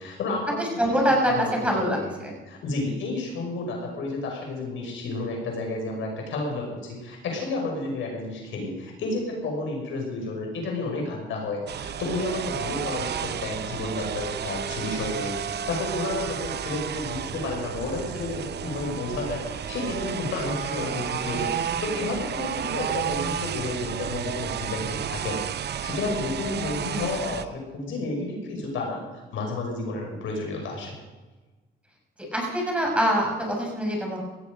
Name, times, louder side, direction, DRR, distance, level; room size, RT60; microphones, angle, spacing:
voice 1, 0.0-2.1 2.4-29.0 29.3-31.0, left 2 dB, 75° left, 1 dB, 5.7 m, -31 dB
voice 2, 0.6-2.3 32.3-34.2, equal, 5° right, -1 dB, 6.5 m, -24 dB
sound 1, 11.7-27.5, right 8 dB, 55° right, 0.8 m, -32 dB
18.0 x 14.0 x 5.3 m, 1.2 s
cardioid pair, 90°, 20 cm